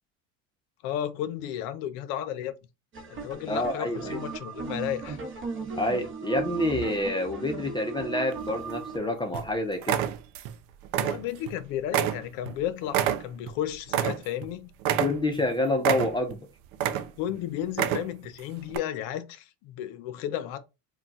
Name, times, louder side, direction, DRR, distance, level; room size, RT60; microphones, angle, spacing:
voice 1, 0.8-2.5 3.1-5.2 10.9-14.7 17.2-20.6, left 11 dB, 60° left, 0.6 m, -33 dB
sound 1, 2.9-9.0, right 4 dB, 30° right, 0.9 m, -37 dB
voice 2, 3.5-4.2 5.7-10.0 15.0-16.4, left 1 dB, 10° left, 0.4 m, -28 dB
sound 2, 8.3-9.0 9.3-9.5 9.8-10.6 10.8-11.6 11.9-14.5 14.8-15.4 15.8-16.4 16.7-17.3 17.7-18.3 18.7-18.8, right 10 dB, 55° right, 0.5 m, -28 dB
2.2 x 2.2 x 3.9 m
hypercardioid pair, 80°, 39 cm